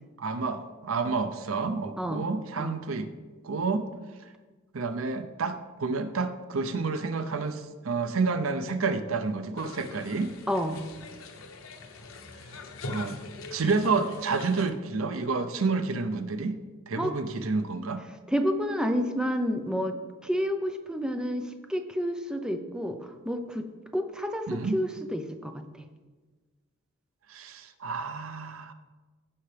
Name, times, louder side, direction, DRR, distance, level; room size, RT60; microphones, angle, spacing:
voice 1, 0.2-3.1 3.4-3.9 4.7-10.3 12.9-13.2 13.5-16.6 16.9-18.0 24.5-24.8 27.3-28.7, right 4 dB, 90° right, 10 dB, 0.7 m, -29 dB
voice 2, 2.0-2.3 2.6-2.8 10.5-10.8 17.0-17.1 18.3-21.4 21.7-23.0 23.3-23.7 23.9-25.6, equal, 5° right, 6 dB, 0.6 m, -29 dB
sound 1, 9.6-14.7, left 3 dB, 85° left, 0.9 m, -43 dB
15.5 x 5.7 x 3.4 m, 1.3 s
head